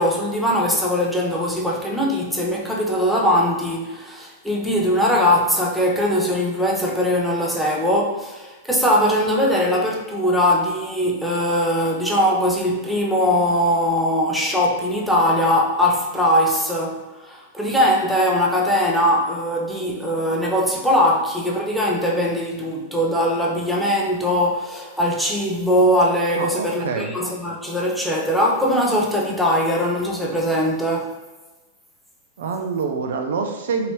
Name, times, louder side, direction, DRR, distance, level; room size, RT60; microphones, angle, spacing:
voice 1, 0.0-31.1, equal, ahead, 0.6 m, -21 dB
voice 2, 26.4-27.1 32.4-33.9, right 5 dB, 75° right, 0.4 m, -26 dB
2.9 x 2.8 x 3.1 m
hypercardioid pair, 115°, 0 cm